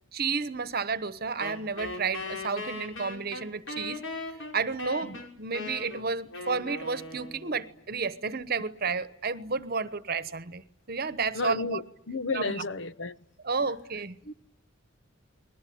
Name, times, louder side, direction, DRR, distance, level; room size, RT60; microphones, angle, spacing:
voice 1, 0.1-4.0 4.5-10.6 10.9-11.8 12.3-12.5 13.4-14.1, right 4 dB, 50° right, 1.1 m, -31 dB
Wind instrument woodwind instrument, 1.4-7.7, left 2 dB, 80° left, 5.7 m, -39 dB
voice 2, 11.3-13.1 14.2-14.3, left 3 dB, 65° left, 1.1 m, -32 dB
30.0 x 21.5 x 8.7 m
head